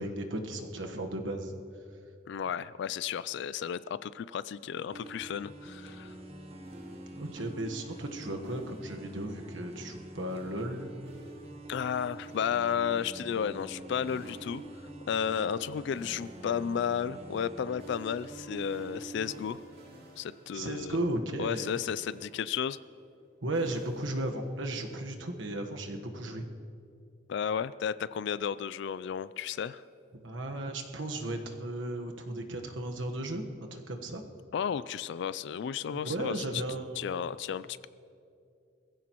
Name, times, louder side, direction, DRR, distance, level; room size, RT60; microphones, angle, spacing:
voice 1, 0.0-1.5 7.2-10.9 20.5-21.7 23.4-26.5 30.2-33.4 33.7-34.2 35.9-37.1, right 1 dB, 70° right, 4 dB, 1.3 m, -35 dB
voice 2, 2.3-6.1 11.7-14.6 15.1-19.6 20.2-21.0 21.4-22.8 27.3-29.8 34.5-36.4 37.0-37.9, left 8 dB, 65° left, 16 dB, 0.3 m, -33 dB
sound 1, 4.9-19.4, right 2 dB, 30° right, 1.2 m, -45 dB
sound 2, 6.6-7.9 8.4-9.7 10.3-13.4 14.1-15.6 16.0-21.4 21.6-24.9, right 1 dB, 55° right, 2.4 m, -57 dB
22.0 x 15.5 x 3.0 m, 2.5 s
head